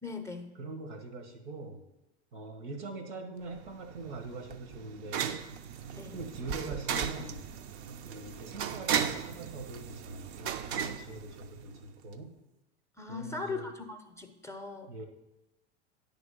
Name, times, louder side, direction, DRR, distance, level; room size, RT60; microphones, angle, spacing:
voice 1, 0.0-0.5 5.9-6.2 13.0-13.9 14.1-14.9, left 4 dB, 10° left, 5 dB, 0.6 m, -39 dB
voice 2, 0.6-1.8 2.3-5.4 6.1-7.4 8.0-12.4 13.1-13.7 14.9-15.0, right 3 dB, 75° right, 6 dB, 1.4 m, -42 dB
sound 1, 3.6-11.9, right 8 dB, 50° right, 0.6 m, -36 dB
9.3 x 3.6 x 6.2 m, 0.96 s
hypercardioid pair, 85°, 35 cm